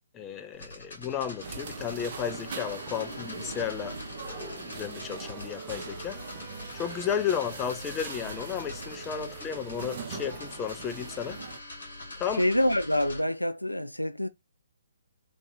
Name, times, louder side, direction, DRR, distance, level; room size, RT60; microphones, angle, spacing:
voice 1, 0.1-6.2 6.7-11.4 12.1-12.5, left 8 dB, 15° left, 0.5 m, -33 dB
sound 1, 0.5-13.2, left 2 dB, 60° left, 1.9 m, -44 dB
sound 2, 1.4-11.6, right 4 dB, 40° right, 1.0 m, -41 dB
Wind instrument woodwind instrument, 3.5-7.2 7.5-12.8, right 3 dB, 15° right, 0.9 m, -53 dB
voice 2, 12.4-14.3, left 1 dB, 90° left, 0.4 m, -26 dB
3.3 x 2.9 x 3.9 m
figure-of-eight pair, 130°, 0 cm